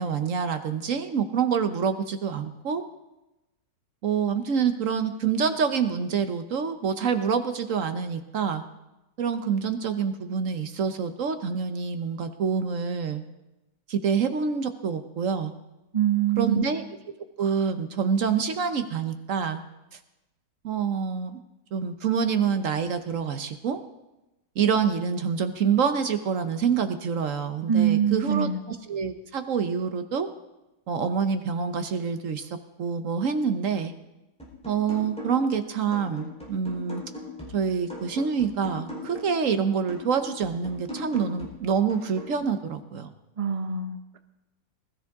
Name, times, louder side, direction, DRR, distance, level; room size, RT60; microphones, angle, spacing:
voice 1, 0.0-2.8 4.0-8.6 9.2-13.2 13.9-15.5 16.4-16.8 17.4-19.6 19.9-20.0 20.6-21.4 21.7-23.8 24.6-30.3 30.9-33.9 34.6-37.0 37.5-43.1, right 6 dB, 55° right, 8 dB, 1.1 m, -26 dB
voice 2, 15.9-16.6 27.7-28.6 43.4-44.2, right 9 dB, 40° right, 8 dB, 0.5 m, -24 dB
sound 1, 34.4-35.6 35.9-39.4 39.9-42.4, left 1 dB, 5° left, 3.8 m, -40 dB
20.5 x 13.0 x 3.6 m, 0.97 s
omnidirectional pair, 1.9 m